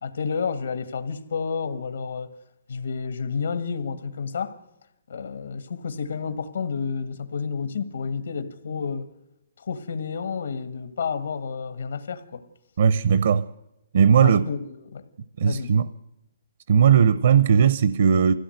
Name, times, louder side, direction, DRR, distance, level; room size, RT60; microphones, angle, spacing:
voice 1, 0.0-2.3 2.7-4.6 5.1-9.1 9.6-12.4 14.2-15.0 15.4-15.7, left 5 dB, 80° left, 1.6 m, -30 dB
voice 2, 12.8-13.5 13.9-14.4 15.4-15.9 16.7-18.3, right 7 dB, 55° right, 0.6 m, -18 dB
21.0 x 16.5 x 7.9 m
hypercardioid pair, 175°, 0 cm